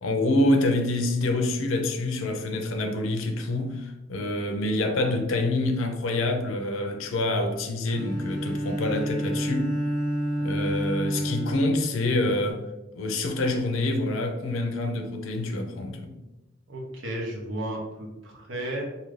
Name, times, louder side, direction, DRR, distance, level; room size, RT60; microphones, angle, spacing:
voice 1, 0.0-9.7 10.4-12.6 12.9-16.2, left 2 dB, 80° left, 0.5 m, -26 dB
Bowed string instrument, 7.9-12.5, equal, 50° right, 1.5 m, -29 dB
voice 2, 16.7-18.8, right 1 dB, 70° right, 0.8 m, -33 dB
2.7 x 2.5 x 3.1 m
head